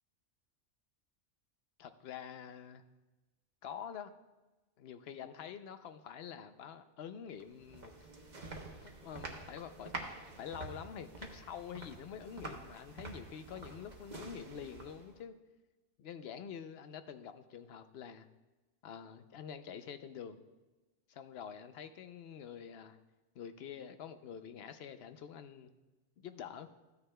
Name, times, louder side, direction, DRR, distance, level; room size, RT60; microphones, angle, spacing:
voice 1, 1.8-2.8 3.6-4.1 4.8-7.9 8.3-8.4 8.8-15.3 16.0-18.3 18.8-20.4 21.1-23.0 23.3-25.8 26.2-26.7, left 8 dB, 65° left, 10 dB, 0.8 m, -47 dB
sound 1, 7.4-15.2, right 2 dB, 40° right, 1.1 m, -48 dB
14.5 x 9.4 x 2.2 m, 1.1 s
omnidirectional pair, 1.2 m